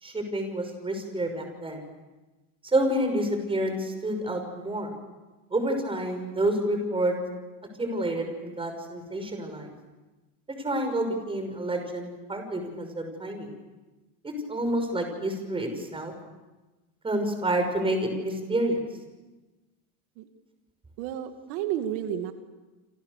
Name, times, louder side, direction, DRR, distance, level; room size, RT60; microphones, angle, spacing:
voice 1, 0.0-1.8 2.6-4.9 5.5-7.2 7.8-9.7 10.6-13.5 14.2-16.1 17.0-18.8, right 1 dB, 15° right, 5 dB, 6.1 m, -28 dB
voice 2, 21.0-22.3, right 10 dB, 80° right, 6 dB, 2.5 m, -31 dB
28.5 x 27.5 x 6.8 m, 1.1 s
cardioid pair, 145°, 40 cm